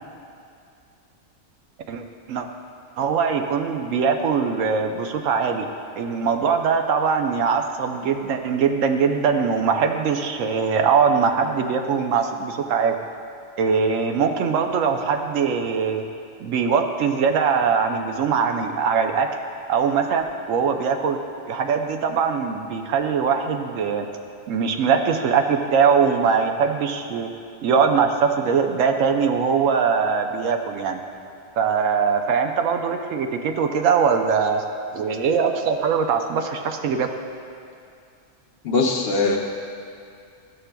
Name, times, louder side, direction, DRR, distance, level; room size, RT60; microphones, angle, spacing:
voice 1, 1.9-2.5 3.0-5.7 6.0-13.0 13.6-16.0 16.4-19.3 19.7-20.2 20.5-21.2 21.5-24.1 24.5-27.3 27.6-31.0 31.6-34.6 34.9-37.1, right 6 dB, 85° right, 5 dB, 1.0 m, -21 dB
voice 2, 38.6-39.4, left 3 dB, 60° left, 0 dB, 0.9 m, -20 dB
13.0 x 6.6 x 2.2 m, 2.5 s
omnidirectional pair, 1.3 m